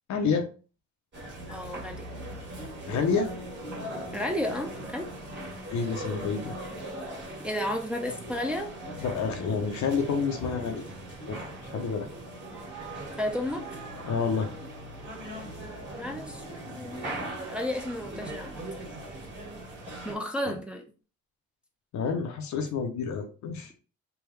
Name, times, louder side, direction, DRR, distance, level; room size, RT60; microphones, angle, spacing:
voice 1, 0.1-0.5 2.9-3.3 5.7-6.6 9.0-10.8 11.3-11.4 11.7-12.1 14.0-14.5 20.5-20.6 21.9-23.7, left 5 dB, 65° left, 4 dB, 0.7 m, -28 dB
sound 1, 1.1-20.2, right 1 dB, 35° right, 1.6 m, -39 dB
voice 2, 1.5-2.1 4.1-5.1 7.4-8.7 13.2-13.6 16.0-18.6 20.0-20.8, left 1 dB, 5° right, 1 dB, 0.6 m, -32 dB
3.4 x 2.2 x 3.2 m, 0.36 s
cardioid pair, 90°, 30 cm